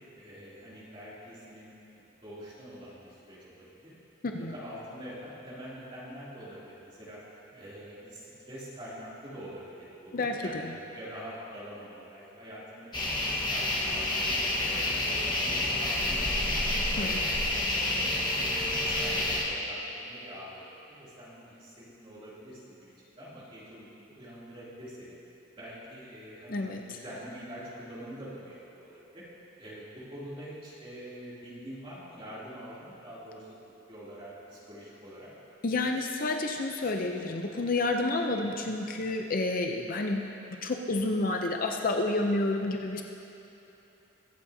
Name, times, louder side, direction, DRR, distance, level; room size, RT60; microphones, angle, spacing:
voice 1, 0.2-4.0 4.4-7.2 7.5-10.1 10.4-14.2 14.5-16.6 17.0-25.2 25.5-29.2 29.6-33.5 33.9-35.3, equal, 25° right, -9 dB, 2.8 m, -45 dB
voice 2, 4.2-4.5 10.1-10.7 17.0-17.1 26.5-27.0 35.6-43.0, left 2 dB, 40° left, 3 dB, 0.6 m, -30 dB
sound 1, 12.9-19.4, left 1 dB, 20° left, 1.3 m, -29 dB
23.0 x 8.3 x 2.8 m, 2.9 s
head